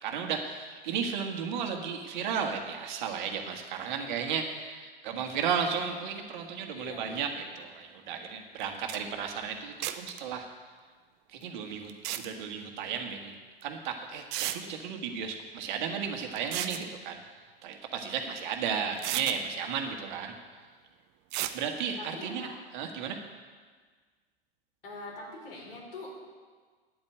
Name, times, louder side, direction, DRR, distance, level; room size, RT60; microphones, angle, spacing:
voice 1, 0.0-10.5 11.3-11.9 12.2-13.3 13.6-17.2 17.6-20.3 21.5-22.5 22.7-23.2, right 6 dB, 50° right, 4 dB, 1.7 m, -34 dB
voice 2, 6.7-7.4 22.0-22.5 24.8-26.1, left 2 dB, 65° left, -2 dB, 4.8 m, -43 dB
sound 1, 8.6-8.7 8.9-9.0 9.8-10.2 11.9-12.3 13.6-13.7 14.3-14.6 16.4-16.8 18.4-18.5 19.0-19.4 21.3-21.6, right 13 dB, 35° right, 0.7 m, -33 dB
9.8 x 8.6 x 9.2 m, 1.5 s
figure-of-eight pair, 90°, 30 cm